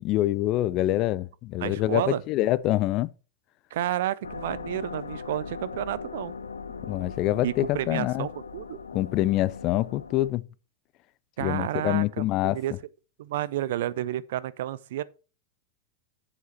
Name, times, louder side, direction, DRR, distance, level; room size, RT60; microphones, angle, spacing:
voice 1, 0.0-3.1 6.8-8.3 8.9-10.4 11.4-12.6, left 15 dB, 40° left, 0.4 m, -25 dB
voice 2, 1.6-2.2 3.7-6.3 7.4-8.8 11.4-12.7 13.2-15.0, right 13 dB, 55° right, 0.5 m, -31 dB
sound 1, 4.2-10.3, left 5 dB, 75° left, 0.8 m, -39 dB
8.0 x 7.3 x 4.3 m
figure-of-eight pair, 90°, 0 cm